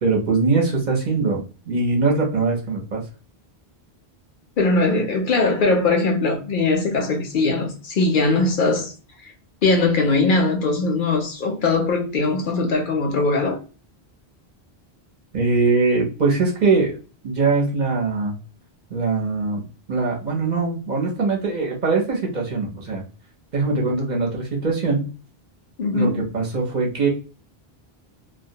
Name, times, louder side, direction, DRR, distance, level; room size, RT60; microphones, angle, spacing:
voice 1, 0.0-3.0 15.3-17.0 17.2-18.3 18.9-19.6 19.9-23.0 23.5-25.1 25.9-27.1, right 4 dB, 50° right, 0.8 m, -22 dB
voice 2, 4.6-8.9 9.2-9.3 9.6-13.6 25.8-26.3, left 3 dB, 60° left, 0.6 m, -20 dB
2.2 x 2.2 x 2.7 m
omnidirectional pair, 1.0 m